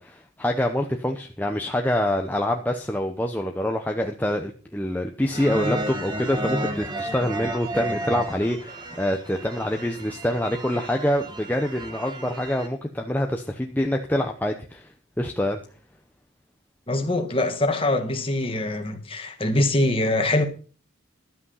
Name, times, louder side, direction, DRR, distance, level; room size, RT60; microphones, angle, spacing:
voice 1, 0.0-14.9 15.2-15.6, left 1 dB, 10° left, 0.8 m, -26 dB
sound 1, 5.3-12.7, right 1 dB, 20° right, 1.4 m, -32 dB
voice 2, 16.9-20.4, left 1 dB, 25° left, 1.7 m, -23 dB
12.5 x 8.3 x 5.6 m
head